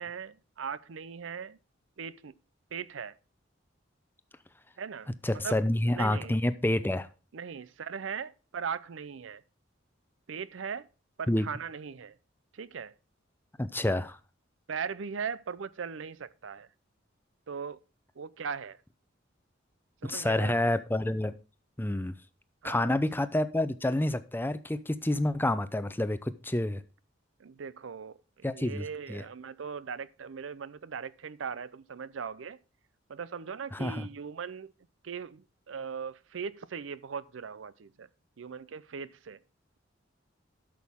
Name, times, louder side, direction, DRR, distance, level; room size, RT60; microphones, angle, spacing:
voice 1, 0.0-1.6 2.0-2.3 2.7-3.2 4.8-6.4 7.3-9.4 10.3-10.9 11.2-12.2 12.5-12.9 14.7-16.7 17.5-17.8 18.2-18.8 20.0-20.7 22.6-23.0 27.4-32.6 33.1-34.7 35.0-38.1 38.4-39.4, right 6 dB, 75° right, 0.5 m, -39 dB
voice 2, 5.2-7.1 11.3-11.5 13.6-14.2 20.1-21.3 21.8-22.1 22.6-26.8 28.4-29.2 33.7-34.1, left 1 dB, 10° left, 0.6 m, -28 dB
12.5 x 6.3 x 3.6 m
head